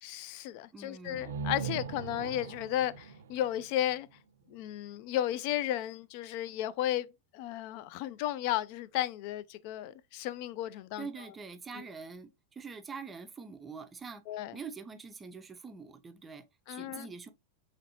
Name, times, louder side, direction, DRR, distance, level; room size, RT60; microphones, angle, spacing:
voice 1, 0.0-4.1 4.5-7.1 7.3-11.1 14.3-14.6 16.7-17.1, left 12 dB, 50° left, 0.3 m, -34 dB
voice 2, 0.7-1.3 11.0-14.2 14.5-17.3, right 5 dB, 15° right, 0.5 m, -45 dB
sound 1, 1.0-4.8, right 6 dB, 85° right, 0.4 m, -41 dB
4.1 x 3.1 x 2.8 m
supercardioid pair, 140°, 0 cm